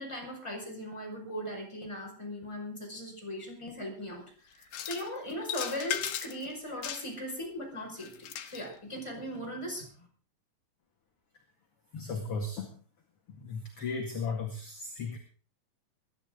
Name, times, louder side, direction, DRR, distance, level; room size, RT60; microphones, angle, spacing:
voice 1, 0.0-10.1, equal, 5° left, 0 dB, 5.4 m, -39 dB
sound 1, 4.6-5.1 5.5-6.5 6.8-7.3 8.0-8.7, left 10 dB, 75° left, 3.0 m, -36 dB
voice 2, 11.9-12.7 13.3-15.2, left 4 dB, 45° left, 2 dB, 2.6 m, -36 dB
22.0 x 12.0 x 3.8 m, 0.39 s
omnidirectional pair, 4.1 m